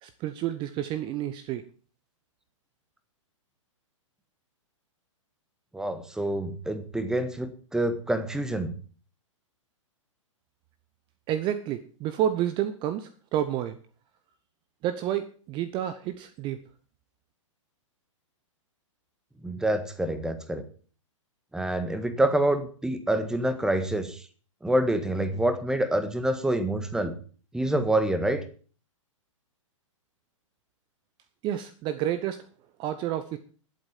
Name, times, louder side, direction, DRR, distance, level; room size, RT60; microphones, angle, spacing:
voice 1, 0.0-1.6 11.3-13.8 14.8-16.6 31.4-32.4 32.8-33.4, right 11 dB, 30° right, 12 dB, 0.9 m, -30 dB
voice 2, 5.7-8.7 19.4-20.6 21.5-24.2 24.6-27.1 27.5-28.4, right 1 dB, 5° right, 10 dB, 1.5 m, -27 dB
12.0 x 8.1 x 7.4 m, 0.41 s
figure-of-eight pair, 110°, 17 cm